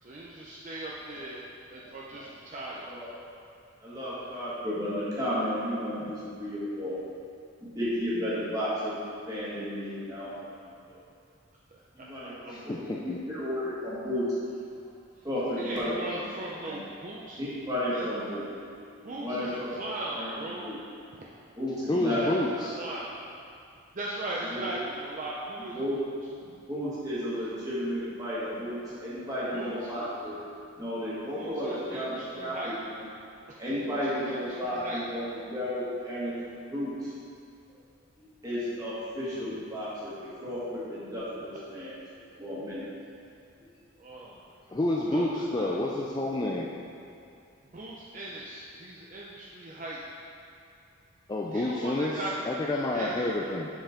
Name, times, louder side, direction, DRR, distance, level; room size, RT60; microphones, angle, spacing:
voice 1, 0.0-2.9 11.7-12.1 12.8-12.9 15.1-15.3 15.6-17.4 17.9-18.1 19.0-20.7 21.1-21.2 21.9-22.4 22.7-23.2 23.9-26.1 27.4-27.5 28.9-29.0 29.5-30.2 31.3-32.7 33.5-35.0 44.0-44.8 45.1-45.8 47.6-50.0 51.5-52.5 52.9-53.4, right 1 dB, 35° right, -4 dB, 0.5 m, -39 dB
voice 2, 3.8-7.0 7.6-9.0 9.3-11.0 11.9-14.3 15.2-15.9 16.6-16.8 17.4-18.9 19.2-19.7 20.1-20.8 21.6-22.7 24.5-24.7 25.7-26.0 26.7-30.4 30.8-33.0 33.6-36.4 36.7-37.1 38.2-41.9 42.3-42.9, equal, 15° right, -9 dB, 1.6 m, -33 dB
voice 3, 12.5-13.2 21.9-22.8 44.7-46.7 51.3-52.1 52.5-53.7, left 1 dB, 20° left, -2 dB, 0.3 m, -29 dB
7.1 x 5.4 x 3.6 m, 2.5 s
head